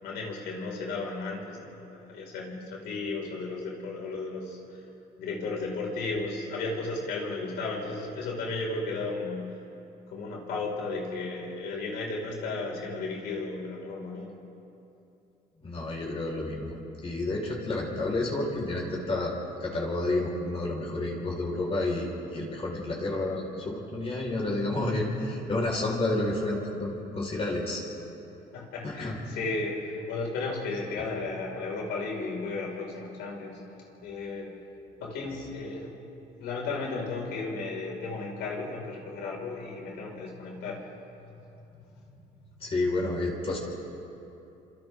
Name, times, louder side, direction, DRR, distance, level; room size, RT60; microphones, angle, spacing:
voice 1, 0.0-4.8 5.2-9.6 10.1-14.4 28.5-33.6 34.0-34.5 35.0-35.9 36.4-40.9 41.2-41.3 41.7-41.9, left 3 dB, 85° left, -2 dB, 5.4 m, -34 dB
voice 2, 15.6-16.7 17.0-19.3 19.6-27.8 28.8-29.2 42.6-43.6, left 2 dB, 35° left, -3 dB, 5.2 m, -30 dB
29.0 x 26.5 x 3.8 m, 2.8 s
cardioid pair, 110°, 17 cm